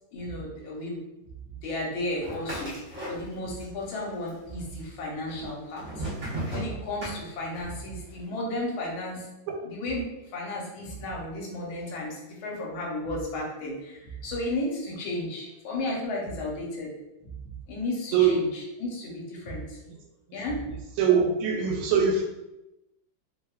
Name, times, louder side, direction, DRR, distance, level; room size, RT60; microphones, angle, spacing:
voice 1, 0.1-1.0 1.6-2.7 3.0-6.1 6.5-9.3 9.6-10.1 10.3-16.9 17.2-18.5 18.8-19.8 20.3-20.7, left 1 dB, 75° left, -3 dB, 1.5 m, -33 dB
sound 1, 2.2-3.6 3.9-4.6 5.3-7.7, right 1 dB, 45° right, 1.0 m, -36 dB
voice 2, 18.1-18.4 20.3-20.4 21.0-22.2, right 6 dB, 85° right, 2 dB, 1.4 m, -22 dB
3.5 x 2.1 x 2.2 m, 0.95 s
omnidirectional pair, 2.3 m